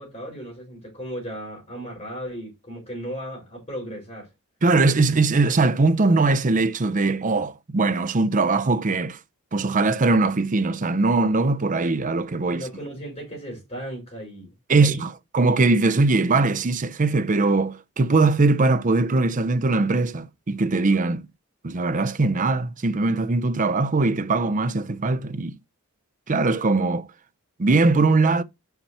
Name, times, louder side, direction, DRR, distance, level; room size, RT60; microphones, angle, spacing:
voice 1, 0.0-4.3 12.5-14.5 14.8-15.1, equal, 30° left, 4.7 m, -36 dB
voice 2, 4.6-9.2 9.5-12.7 14.7-21.3 21.6-25.5 26.3-27.1 27.6-28.4, right 3 dB, 35° right, 0.6 m, -21 dB
5.8 x 5.7 x 4.2 m
head